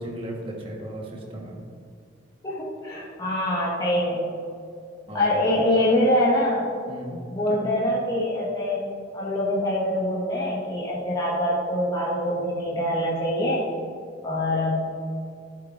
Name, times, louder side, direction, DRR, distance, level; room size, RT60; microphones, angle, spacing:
voice 1, 0.0-1.6 5.1-5.3 5.7-5.9 6.9-7.7, right 1 dB, 30° right, -1 dB, 1.5 m, -36 dB
voice 2, 2.4-4.2 5.1-6.7 7.3-8.8 9.1-13.7 14.2-14.8, left 1 dB, 20° left, -6 dB, 1.6 m, -24 dB
11.5 x 8.4 x 2.6 m, 2.3 s
head